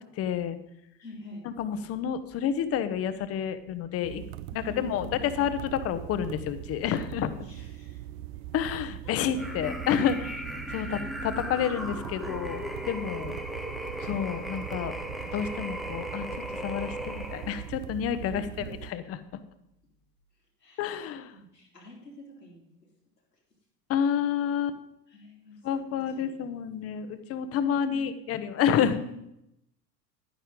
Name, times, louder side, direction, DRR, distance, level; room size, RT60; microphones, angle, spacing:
voice 1, 0.2-0.6 1.6-4.2 4.5-7.3 8.5-10.4 10.7-13.4 14.0-15.0 15.3-16.3 16.6-18.5 18.9-19.2 20.8-21.3 23.9-24.8 25.6-29.0, left 8 dB, 30° left, 12 dB, 0.9 m, -29 dB
voice 2, 1.0-1.5 4.5-5.4 7.4-8.0 9.0-9.5 10.8-11.1 18.2-18.8 20.6-21.0 21.3-22.9 25.1-26.4 27.6-28.2 28.9-29.2, left 2 dB, 90° left, -2 dB, 3.0 m, -47 dB
sound 1, 4.0-18.9, right 13 dB, 45° right, 0.4 m, -41 dB
sound 2, 9.3-17.7, equal, ahead, 0.7 m, -37 dB
11.0 x 9.7 x 3.8 m, 0.79 s
figure-of-eight pair, 85°, 48 cm